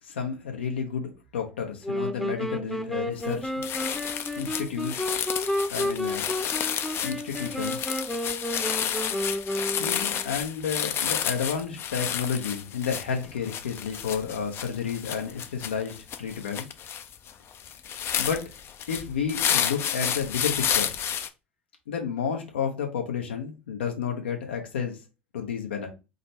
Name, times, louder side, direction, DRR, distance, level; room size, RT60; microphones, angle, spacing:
voice 1, 0.1-3.6 4.4-5.1 5.7-6.2 7.0-7.8 9.8-16.7 18.1-18.4 18.9-20.9 21.9-25.0 25.3-25.9, left 7 dB, 80° left, 0.9 m, -31 dB
sound 1, 1.8-10.3, left 1 dB, 5° left, 0.7 m, -31 dB
sound 2, 3.2-3.4 3.6-21.3, left 8 dB, 45° left, 0.5 m, -31 dB
3.9 x 2.2 x 4.1 m
hypercardioid pair, 65°, 6 cm